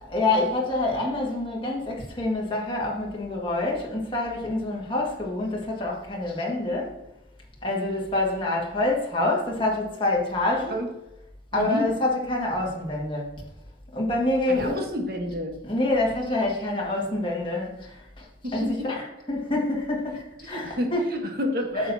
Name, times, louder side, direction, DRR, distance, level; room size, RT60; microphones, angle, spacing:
voice 1, 0.1-6.9 7.6-10.8 11.5-13.3 13.9-14.8 15.6-19.0 19.3-21.0 21.7-21.9, left 2 dB, 30° left, -2 dB, 1.8 m, -26 dB
voice 2, 11.5-11.9 14.5-15.6 18.4-18.9 20.4-21.9, left 1 dB, 55° right, 4 dB, 1.2 m, -30 dB
9.2 x 6.9 x 2.7 m, 0.89 s
head